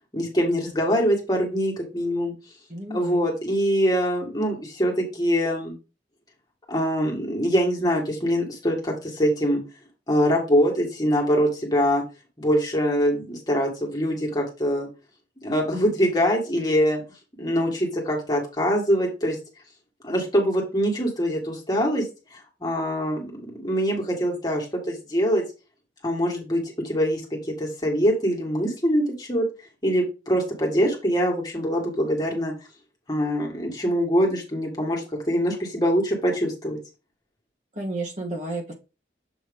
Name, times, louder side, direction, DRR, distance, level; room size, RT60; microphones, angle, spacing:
voice 1, 0.1-2.3 2.9-5.7 6.7-9.6 10.1-12.0 12.4-14.9 15.4-17.0 17.4-19.4 20.0-22.1 22.6-25.4 26.0-29.4 29.8-32.5 33.1-36.8, equal, 20° left, -1 dB, 1.7 m, -23 dB
voice 2, 2.7-3.3 37.7-38.7, right 2 dB, 40° right, 0 dB, 1.3 m, -32 dB
7.3 x 3.0 x 5.1 m, 0.31 s
head